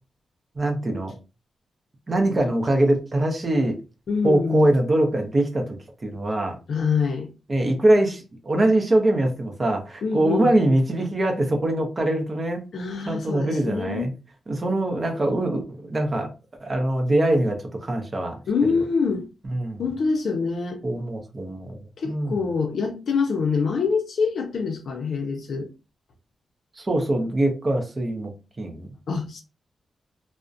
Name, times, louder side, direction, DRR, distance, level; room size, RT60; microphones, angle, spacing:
voice 1, 0.6-1.1 2.1-3.8 4.2-5.8 6.0-6.5 7.5-12.6 13.1-14.1 14.5-16.3 16.6-18.4 18.7-18.8 19.5-19.8 20.8-21.8 22.0-22.4 26.8-28.9, right 1 dB, 30° right, 0.5 m, -23 dB
voice 2, 4.1-4.7 6.7-7.3 10.0-10.5 12.7-14.1 18.5-19.3 19.8-20.8 22.0-25.7 29.1-29.4, left 5 dB, 60° left, 0.5 m, -25 dB
2.4 x 2.0 x 2.5 m
wide cardioid pair, 150°, 0 cm